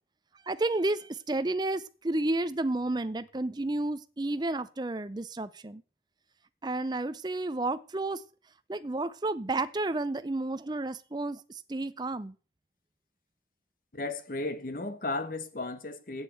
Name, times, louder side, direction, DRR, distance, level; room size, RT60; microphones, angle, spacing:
voice 1, 0.5-5.8 6.6-8.2 8.7-12.3, right 2 dB, 25° right, 0.5 m, -31 dB
voice 2, 13.9-16.2, left 2 dB, 50° left, 1.0 m, -35 dB
8.1 x 7.8 x 7.9 m
head